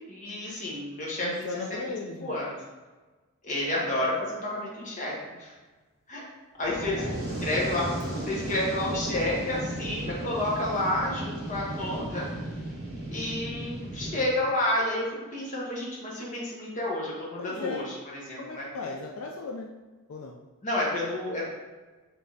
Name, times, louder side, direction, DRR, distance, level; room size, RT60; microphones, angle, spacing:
voice 1, 0.1-1.8 2.2-2.5 3.4-5.5 6.1-6.3 6.6-7.9 8.3-12.3 13.1-15.1 15.3-17.9 18.1-18.7 20.6-21.5, left 1 dB, 35° left, -4 dB, 1.1 m, -30 dB
voice 2, 1.2-2.4 6.8-7.2 17.4-17.9 18.4-19.7 20.1-20.4, left 3 dB, 75° left, 0 dB, 0.4 m, -37 dB
Fire, 6.6-14.3, right 1 dB, 45° right, 1.2 m, -35 dB
5.0 x 3.3 x 2.7 m, 1.3 s
head